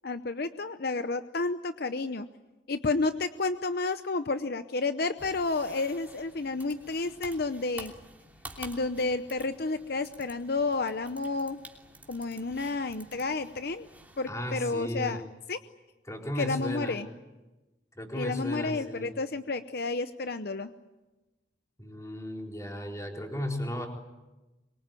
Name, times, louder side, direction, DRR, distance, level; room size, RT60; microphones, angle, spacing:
voice 1, 0.0-2.3 2.7-7.9 8.6-11.6 12.1-13.9 14.2-15.2 15.5-15.6 16.4-17.1 18.1-20.7, left 3 dB, 55° left, 10 dB, 0.8 m, -31 dB
sound 1, 5.2-14.3, right 2 dB, 10° right, 3.0 m, -50 dB
voice 2, 14.3-15.2 16.1-17.0 17.9-19.1 21.8-23.9, equal, 15° left, 1 dB, 4.2 m, -35 dB
24.0 x 23.5 x 9.1 m, 1.1 s
head